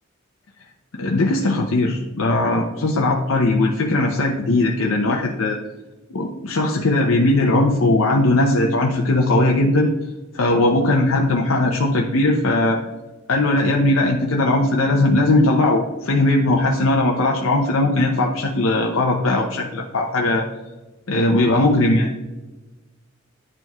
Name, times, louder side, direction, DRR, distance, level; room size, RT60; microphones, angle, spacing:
voice 1, 0.9-5.6 6.1-9.9 10.3-12.8 13.3-20.4 21.1-22.1, left 2 dB, 70° left, 0 dB, 0.7 m, -19 dB
11.0 x 4.5 x 2.3 m, 1.1 s
head